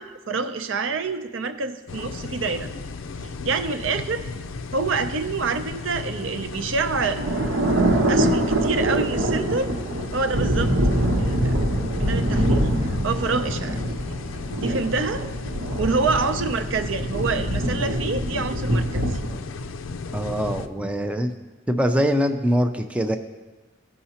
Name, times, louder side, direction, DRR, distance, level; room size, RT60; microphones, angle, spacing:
voice 1, 0.0-2.7 3.4-4.2 4.7-7.2 8.1-9.7 10.1-10.7 11.2-11.6 12.0-13.8 14.6-15.2 15.8-19.2, right 4 dB, 70° right, 9 dB, 0.6 m, -27 dB
sound 1, 1.9-20.7, left 4 dB, 75° left, 0.4 m, -35 dB
sound 2, 6.2-19.3, right 1 dB, 90° right, 1.0 m, -24 dB
voice 2, 20.1-21.3 21.7-23.2, equal, 5° right, 6 dB, 0.4 m, -23 dB
15.5 x 5.6 x 2.9 m, 1.2 s
head